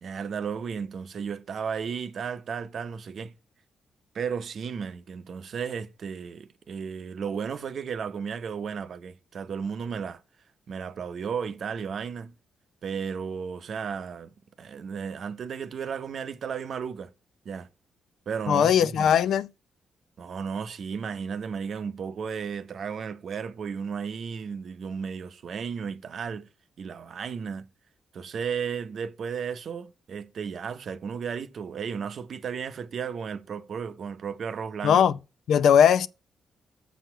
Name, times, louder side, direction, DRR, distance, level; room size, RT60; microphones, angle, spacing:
voice 1, 0.0-3.3 4.1-10.2 10.7-12.3 12.8-17.1 17.4-17.7 18.3-19.2 20.2-26.5 26.8-27.7 28.1-35.0, right 6 dB, 60° right, 0.7 m, -34 dB
voice 2, 18.5-19.5 34.8-35.1 35.5-36.1, left 8 dB, 75° left, 0.5 m, -19 dB
6.8 x 6.3 x 4.4 m
cardioid pair, 85°, 0 cm